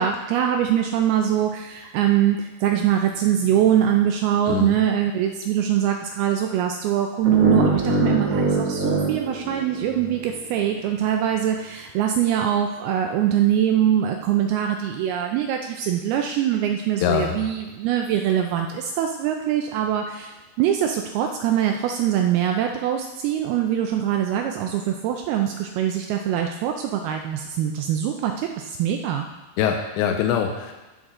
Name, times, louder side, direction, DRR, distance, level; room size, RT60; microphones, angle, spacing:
voice 1, 0.0-29.3, right 10 dB, 80° right, 3 dB, 2.3 m, -23 dB
sound 1, 7.2-10.3, right 2 dB, 50° right, 2.7 m, -23 dB
voice 2, 17.0-17.4 29.6-30.7, left 8 dB, 90° left, 4 dB, 2.9 m, -23 dB
15.5 x 6.4 x 3.7 m, 1.1 s
omnidirectional pair, 5.0 m